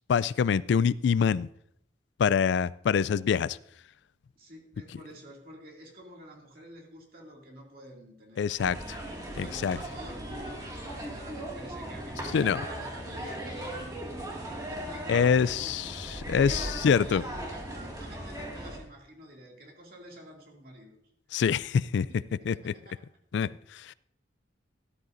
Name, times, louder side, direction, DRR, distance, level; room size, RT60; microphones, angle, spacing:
voice 1, 0.1-1.5 2.2-3.6 8.4-9.0 9.4-9.8 12.3-12.6 15.1-15.8 16.3-17.2 21.3-22.1 22.5-22.7 23.3-23.9, left 6 dB, 70° left, 19 dB, 0.3 m, -25 dB
voice 2, 4.4-8.4 9.4-15.7 16.0-21.0 22.1-23.1, right 1 dB, 50° right, -1 dB, 2.5 m, -49 dB
sound 1, 8.6-18.8, right 1 dB, 20° right, 2.0 m, -38 dB
13.5 x 12.5 x 2.6 m, 0.71 s
head